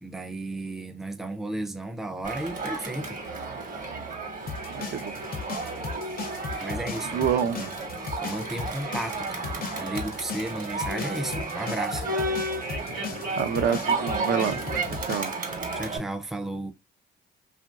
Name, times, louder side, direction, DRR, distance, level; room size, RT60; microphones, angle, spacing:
voice 1, 0.0-3.2 6.6-7.8 8.2-12.2 15.7-16.7, right 1 dB, ahead, 0.4 m, -34 dB
Crowd, 2.2-16.0, right 3 dB, 45° right, 1.0 m, -32 dB
sound 1, 4.5-15.4, left 6 dB, 45° left, 0.6 m, -36 dB
voice 2, 4.7-5.2 6.5-6.7 7.1-7.6 13.0-14.6 15.0-15.3, right 8 dB, 60° right, 0.5 m, -27 dB
2.9 x 2.5 x 2.3 m
cardioid pair, 90°, 20 cm